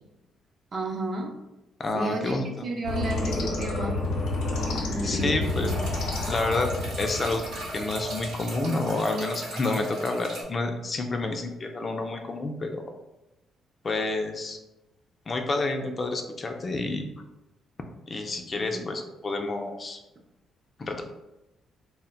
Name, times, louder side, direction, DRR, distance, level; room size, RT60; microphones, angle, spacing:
voice 1, 0.7-1.3 1.9-4.0 4.9-5.8 18.5-18.9, right 2 dB, 45° right, 1 dB, 0.5 m, -32 dB
voice 2, 1.8-2.7 5.0-5.7 6.3-6.7 7.0-7.4 7.7-12.9 13.8-14.6 15.3-17.1 18.1-20.0 20.8-21.0, left 2 dB, 35° left, 4 dB, 0.3 m, -29 dB
sound 1, 2.8-8.9, left 2 dB, 85° left, 0.6 m, -30 dB
sound 2, 5.4-10.4, right 1 dB, 80° right, 0.8 m, -37 dB
2.1 x 2.1 x 3.7 m, 0.95 s
cardioid pair, 90°, 0 cm